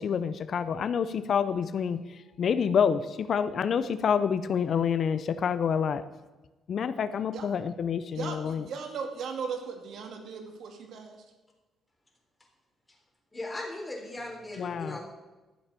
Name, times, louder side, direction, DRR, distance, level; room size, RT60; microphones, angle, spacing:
voice 1, 0.0-2.0 2.4-6.0 6.7-8.6 14.6-15.0, left 7 dB, 55° left, 13 dB, 0.6 m, -27 dB
voice 2, 8.1-11.2, right 6 dB, 70° right, 4 dB, 2.2 m, -37 dB
voice 3, 13.3-15.0, left 1 dB, 20° left, 1 dB, 3.6 m, -38 dB
13.5 x 7.1 x 6.8 m, 1.1 s
cardioid pair, 90°, 0 cm